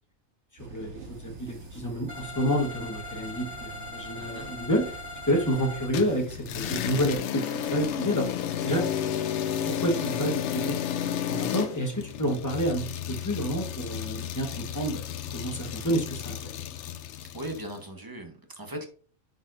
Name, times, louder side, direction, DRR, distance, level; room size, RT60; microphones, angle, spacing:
voice 1, 0.6-5.0 5.3-8.4 8.6-8.8 9.7-15.0 15.3-16.4, equal, 15° left, 1 dB, 1.0 m, -29 dB
sound 1, 0.6-7.0, right 2 dB, 60° right, 1.5 m, -45 dB
sound 2, 2.1-5.9, left 2 dB, 30° left, 3.8 m, -41 dB
voice 2, 4.2-4.5 17.3-18.9, right 1 dB, 20° right, 4 dB, 0.9 m, -38 dB
sound 3, 5.9-17.7, left 9 dB, 70° left, 0.8 m, -32 dB
9.9 x 4.6 x 2.5 m, 0.43 s
omnidirectional pair, 1.3 m